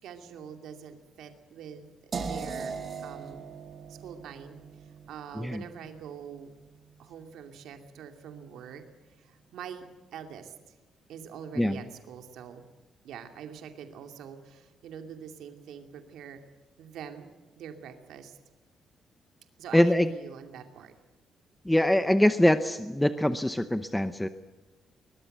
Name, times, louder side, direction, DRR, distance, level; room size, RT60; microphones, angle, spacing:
voice 1, 0.0-3.5 3.9-6.5 7.0-8.8 9.2-9.8 10.1-10.7 11.1-12.6 13.0-16.4 16.8-17.3 17.6-18.4 19.6-20.9, right 8 dB, 80° right, 6 dB, 2.6 m, -44 dB
sound 1, 2.1-8.0, right 5 dB, 35° right, 2.0 m, -41 dB
voice 2, 19.7-20.1 21.6-24.3, left 1 dB, 5° left, 10 dB, 0.7 m, -23 dB
22.0 x 21.0 x 8.0 m, 1.2 s
cardioid pair, 180°, 0 cm